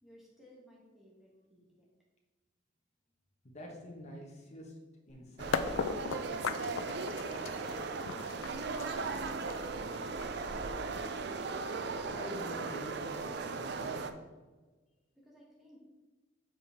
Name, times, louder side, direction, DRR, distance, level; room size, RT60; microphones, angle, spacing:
voice 1, 0.0-1.9 15.1-15.8, equal, ahead, -4 dB, 1.1 m, -60 dB
voice 2, 3.4-4.7 5.1-7.1 12.1-14.1, left 1 dB, 35° left, 0 dB, 1.2 m, -47 dB
sound 1, 5.1-5.2 5.5-11.4, left 5 dB, 85° left, 0.4 m, -38 dB
sound 2, 5.4-14.1, right 4 dB, 55° right, 0.4 m, -37 dB
7.8 x 4.4 x 3.4 m, 1.2 s
head